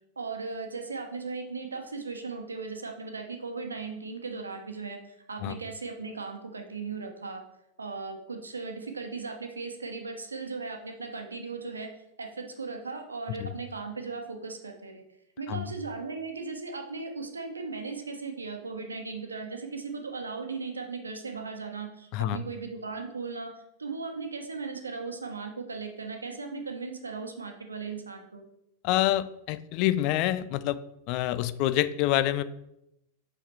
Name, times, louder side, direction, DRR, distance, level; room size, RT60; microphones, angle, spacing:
voice 1, 0.2-7.4 7.8-11.9 12.2-15.0 15.4-28.4, right 4 dB, 75° right, 4 dB, 1.1 m, -37 dB
voice 2, 28.8-30.8 31.1-32.4, left 14 dB, 45° left, 14 dB, 0.4 m, -27 dB
6.3 x 5.5 x 4.6 m, 0.83 s
figure-of-eight pair, 90°, 0 cm